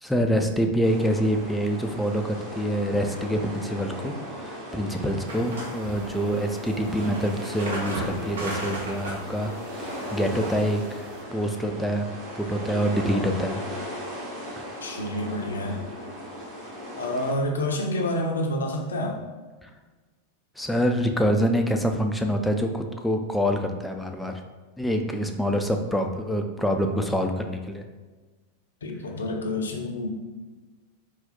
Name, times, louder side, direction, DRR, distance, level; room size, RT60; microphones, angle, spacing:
voice 1, 0.0-11.1 11.3-12.1 12.4-13.6 19.6-19.7 20.6-24.4 24.8-27.8, equal, 5° left, 4 dB, 0.4 m, -26 dB
sound 1, 0.8-17.3, equal, 35° right, 1.2 m, -37 dB
sound 2, 5.3-11.2, right 2 dB, 65° right, 0.9 m, -37 dB
voice 2, 14.8-15.8 17.0-19.2 28.8-30.1, left 1 dB, 70° left, 1 dB, 0.6 m, -28 dB
4.1 x 2.4 x 3.8 m, 1.3 s
figure-of-eight pair, 90°, 0 cm